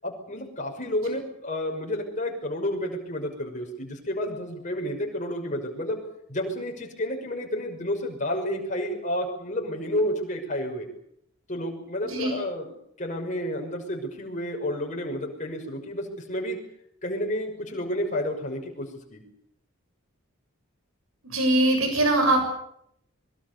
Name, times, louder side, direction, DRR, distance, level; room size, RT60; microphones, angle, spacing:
voice 1, 0.0-6.0 6.3-10.9 11.5-12.7 13.0-16.6 17.0-19.2, left 1 dB, 35° left, 2 dB, 6.0 m, -30 dB
voice 2, 12.0-12.4 21.2-22.5, right 1 dB, 85° right, 4 dB, 7.4 m, -22 dB
25.5 x 22.5 x 7.0 m, 0.72 s
head